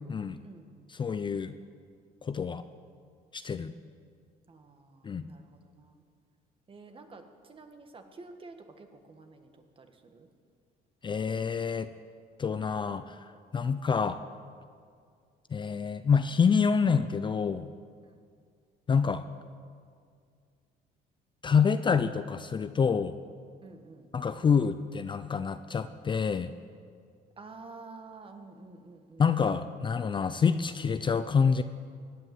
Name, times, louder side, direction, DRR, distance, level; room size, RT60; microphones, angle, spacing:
voice 1, 0.1-0.4 1.0-1.5 2.2-2.6 3.3-3.7 5.0-5.3 11.0-11.9 12.4-13.2 13.5-14.2 15.5-17.7 18.9-19.2 21.4-23.2 24.1-26.5 29.2-31.6, left 6 dB, 30° left, 11 dB, 0.5 m, -27 dB
voice 2, 4.5-6.0 6.7-10.3 13.5-13.8 18.0-18.1 23.6-24.1 27.4-29.2, right 3 dB, 30° right, 6 dB, 1.6 m, -50 dB
17.5 x 9.3 x 7.7 m, 2.2 s
cardioid pair, 110°, 17 cm